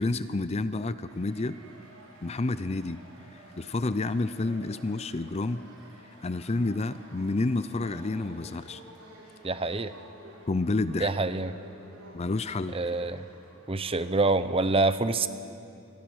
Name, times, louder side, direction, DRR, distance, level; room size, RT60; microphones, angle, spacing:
voice 1, 0.0-1.6 2.2-3.0 3.3-5.6 6.2-8.8 10.5-11.1 12.1-12.8, left 2 dB, 30° left, 13 dB, 0.5 m, -29 dB
sound 1, 1.0-14.4, right 1 dB, 90° right, 6.9 m, -52 dB
voice 2, 9.4-9.9 11.0-11.5 12.7-13.2 13.7-15.3, right 3 dB, 25° right, 12 dB, 0.7 m, -26 dB
26.0 x 21.5 x 6.3 m, 2.6 s
head